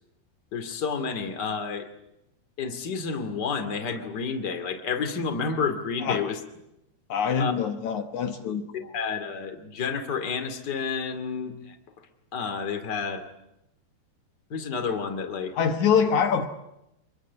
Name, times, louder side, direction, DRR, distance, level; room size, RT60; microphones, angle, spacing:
voice 1, 0.5-1.9 2.6-6.4 7.4-7.5 8.9-11.8 12.3-13.2 14.5-15.5, left 5 dB, 35° left, 7 dB, 1.9 m, -30 dB
voice 2, 7.1-8.6 8.9-9.0 15.5-16.5, left 7 dB, 90° left, 6 dB, 1.6 m, -24 dB
26.5 x 22.5 x 8.4 m, 0.84 s
omnidirectional pair, 5.4 m